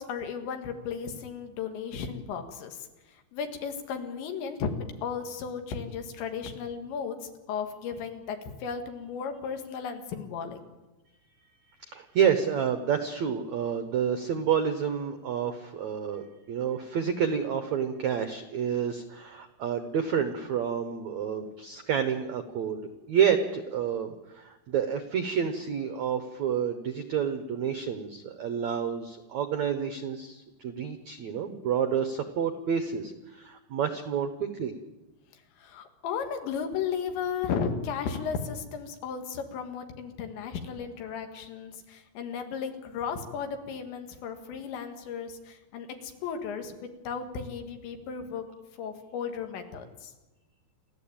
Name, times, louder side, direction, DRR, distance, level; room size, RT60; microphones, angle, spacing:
voice 1, 0.0-2.9 3.3-4.7 5.0-10.6 35.3-48.4 48.8-50.1, left 6 dB, 80° left, 6 dB, 4.3 m, -35 dB
voice 2, 11.8-22.8 23.1-34.7, right 7 dB, 85° right, 9 dB, 1.6 m, -29 dB
29.0 x 13.5 x 8.8 m, 1.1 s
omnidirectional pair, 5.1 m